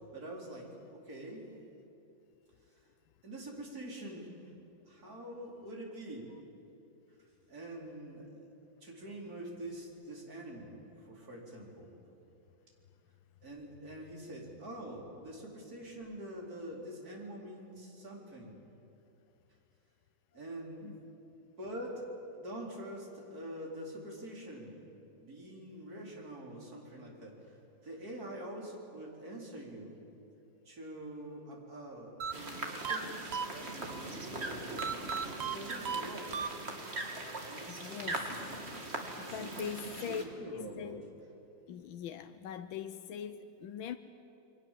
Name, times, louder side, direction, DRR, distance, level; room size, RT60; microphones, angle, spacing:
voice 1, 0.1-1.5 3.2-4.5 4.9-6.3 7.5-8.5 8.8-11.9 13.4-18.5 20.3-20.9 21.6-22.0 22.4-24.7 25.2-29.9 30.6-33.2 33.5-34.0 35.4-36.5 37.4-38.0 39.2-39.7 40.1-41.0, right 1 dB, 50° right, -2 dB, 4.9 m, -45 dB
sound 1, 32.2-34.0 34.8-37.0, right 6 dB, 80° right, 0.5 m, -38 dB
sound 2, 32.3-40.2, right 2 dB, 35° right, 2.7 m, -40 dB
voice 2, 37.7-38.3 39.2-40.2 40.5-41.1 41.7-44.0, left 8 dB, 85° left, 9 dB, 1.6 m, -41 dB
29.0 x 23.0 x 7.6 m, 2.9 s
omnidirectional pair, 2.1 m